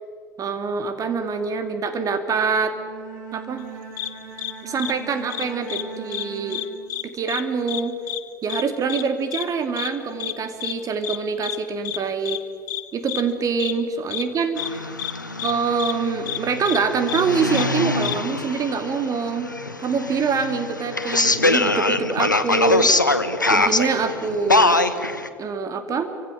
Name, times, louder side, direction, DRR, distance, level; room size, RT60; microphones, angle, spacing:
voice 1, 0.4-2.7 3.3-3.6 4.6-6.6 7.1-7.9 8.4-12.4 12.9-14.8 15.4-19.5 19.8-22.9 23.5-24.8 25.4-26.1, right 5 dB, 35° right, 7 dB, 2.6 m, -25 dB
Bowed string instrument, 2.6-7.3, right 6 dB, 65° right, 7.6 m, -40 dB
sound 1, 4.0-4.1 4.4-4.5 4.8-4.9 5.3-5.8 6.1-6.2 6.5-7.0 7.3-7.4 7.7-7.8 8.1-8.2 8.5-8.6 8.9-9.0 9.3-9.4 9.8-9.9 10.2-10.3 10.6-10.7 11.0-11.2 11.4-11.6 11.8-12.0 12.2-12.4 12.7-12.8 13.1-13.2 13.6-13.7 14.1-14.2 14.6-14.7 15.0-15.1 15.4-15.5 15.8-15.9 16.3-16.4 16.7-16.8 17.1-17.2 17.5-17.7 18.0-18.1, left 15 dB, 65° left, 1.1 m, -29 dB
sound 2, 14.6-25.3, left 2 dB, 90° left, 1.1 m, -23 dB
28.0 x 25.5 x 6.5 m, 2.2 s
figure-of-eight pair, 70°, 10 cm